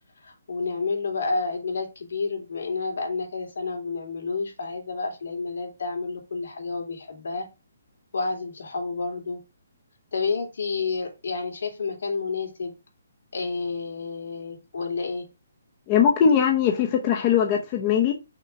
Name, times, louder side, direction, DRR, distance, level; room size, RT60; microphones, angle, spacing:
voice 1, 0.2-7.5 8.1-9.4 10.1-12.7 13.3-15.2, left 4 dB, 75° left, 3.1 m, -30 dB
voice 2, 15.9-18.1, left 7 dB, 20° left, 0.8 m, -20 dB
6.0 x 3.6 x 6.0 m
hypercardioid pair, 170°, 0 cm